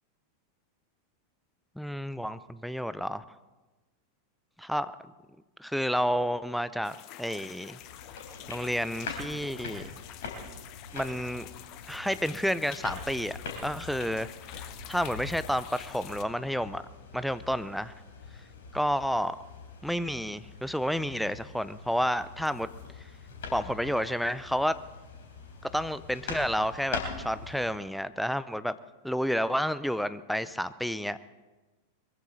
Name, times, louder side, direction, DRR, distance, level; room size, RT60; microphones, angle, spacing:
voice 1, 1.8-3.2 4.6-4.9 5.6-7.8 8.5-10.0 10.9-11.5 11.9-16.8 17.1-17.9 18.7-19.4 19.8-22.7 23.0-23.1 23.5-24.8 25.6-28.7 29.0-31.3, equal, ahead, 14 dB, 0.6 m, -30 dB
sound 1, 6.8-16.2, left 13 dB, 40° left, 0.8 m, -48 dB
sound 2, 7.8-27.7, left 4 dB, 60° left, 3.8 m, -43 dB
22.0 x 14.5 x 4.1 m, 1.2 s
figure-of-eight pair, 90°, 0 cm